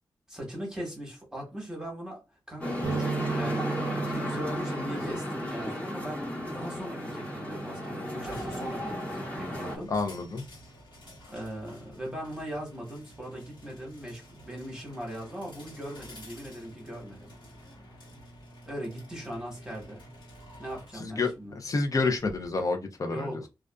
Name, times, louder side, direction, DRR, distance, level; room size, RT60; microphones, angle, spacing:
voice 1, 0.3-3.7 3.9-9.9 11.3-17.3 18.6-20.0 20.6-21.6 23.1-23.5, equal, 10° right, 1.1 m, -39 dB
sound 1, 2.6-9.8, left 1 dB, 15° left, 1.0 m, -34 dB
sound 2, 2.8-10.4, right 6 dB, 55° right, 0.5 m, -39 dB
sound 3, 8.2-22.6, equal, 60° left, 1.3 m, -50 dB
voice 2, 9.9-10.4 21.0-23.5, left 3 dB, 40° left, 0.5 m, -29 dB
2.4 x 2.3 x 2.3 m
wide cardioid pair, 100°, 9 cm